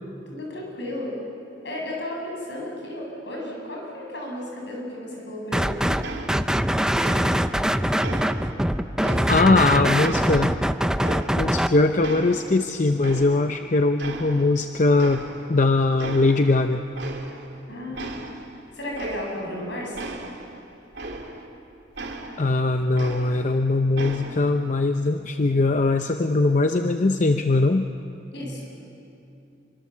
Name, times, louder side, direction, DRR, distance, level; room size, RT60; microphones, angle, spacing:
voice 1, 0.3-1.1 1.6-6.0 9.0-10.1 17.7-18.1 18.7-20.0 28.3-28.7, left 1 dB, 70° left, -1 dB, 8.0 m, -34 dB
sound 1, 5.5-6.0 6.3-11.7, equal, 5° right, 0.6 m, -23 dB
sound 2, 6.0-6.7 7.0-7.6 8.0-9.6 10.0-11.7 12.0-13.6 14.0-14.7 15.0-15.6 16.0-16.6 16.9-17.6 17.9-21.6 22.0-23.6 23.9-24.6, right 2 dB, 65° right, 2.8 m, -37 dB
voice 2, 9.3-10.5 11.4-15.2 15.5-16.8 22.4-27.9, left 3 dB, 45° left, 7 dB, 0.7 m, -21 dB
26.5 x 24.5 x 7.4 m, 2.7 s
head